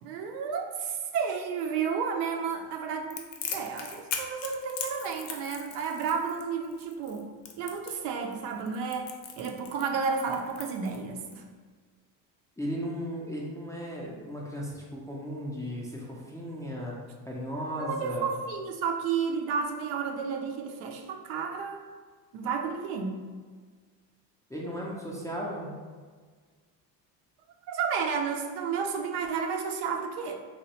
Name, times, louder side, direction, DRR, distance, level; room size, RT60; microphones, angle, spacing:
voice 1, 0.0-3.2 3.5-7.2 7.6-9.1 9.4-11.5 17.8-21.8 22.3-23.1 27.7-30.4, right 6 dB, 70° right, 3 dB, 0.6 m, -31 dB
Crackle, 3.1-11.3, left 7 dB, 75° left, 0.6 m, -39 dB
voice 2, 12.6-16.9 17.3-18.3 24.5-25.7, equal, 5° left, -4 dB, 0.4 m, -36 dB
3.1 x 2.3 x 2.8 m, 1.5 s
hypercardioid pair, 75°, 50 cm